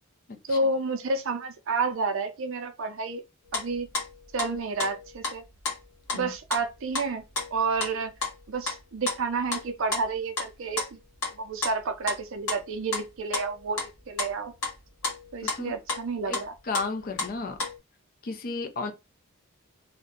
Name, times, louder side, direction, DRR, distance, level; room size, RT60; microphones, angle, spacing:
voice 1, 0.5-3.2 3.5-3.9 4.3-5.4 6.1-7.2 7.5-8.1 8.5-11.0 11.4-14.5 15.3-16.5, right 3 dB, 60° right, 0.5 m, -30 dB
sound 1, 3.5-6.7 6.9-7.1 7.3-11.3 11.6-11.8 12.1-12.2 12.5-13.1 13.3-16.4 16.7-17.8, left 3 dB, 75° left, 1.1 m, -32 dB
voice 2, 15.4-15.8 16.3-16.4 16.6-17.6 18.2-18.9, left 3 dB, 40° left, 0.5 m, -33 dB
2.5 x 2.1 x 3.6 m
head